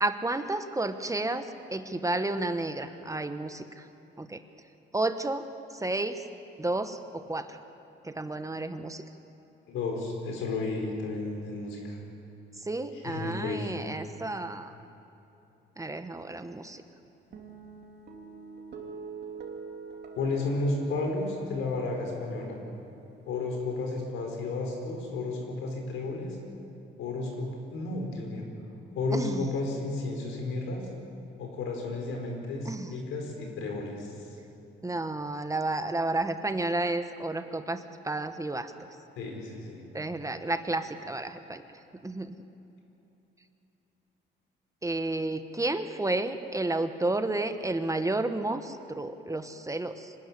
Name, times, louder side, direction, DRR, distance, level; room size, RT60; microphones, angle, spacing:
voice 1, 0.0-3.8 4.2-4.4 4.9-5.4 5.7-6.2 6.6-7.6 8.0-9.0 12.6-14.7 15.8-16.8 29.1-29.5 32.6-32.9 34.8-38.7 39.9-41.6 42.0-42.4 44.8-50.1, right 2 dB, 15° right, 9 dB, 1.1 m, -31 dB
voice 2, 9.7-12.0 12.9-13.8 20.2-22.6 23.3-26.4 27.0-28.4 28.9-30.9 31.4-34.3 39.2-39.8, left 3 dB, 85° left, 1 dB, 4.7 m, -32 dB
sound 1, 17.3-23.9, right 5 dB, 55° right, 3.1 m, -46 dB
24.5 x 13.0 x 9.9 m, 2.9 s
cardioid pair, 90°, 20 cm